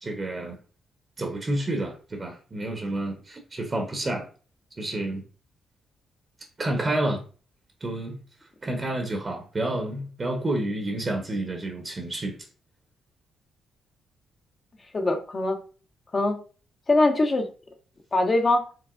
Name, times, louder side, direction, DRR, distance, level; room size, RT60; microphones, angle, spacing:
voice 1, 0.0-0.6 1.2-4.2 4.8-5.2 6.6-7.2 7.8-8.2 8.6-12.4, right 1 dB, 30° right, 0.8 m, -29 dB
voice 2, 14.9-15.6 16.1-16.4 16.9-17.5 18.1-18.6, left 2 dB, 35° left, 0.8 m, -22 dB
4.7 x 3.2 x 2.5 m
cardioid pair, 80°, 0 cm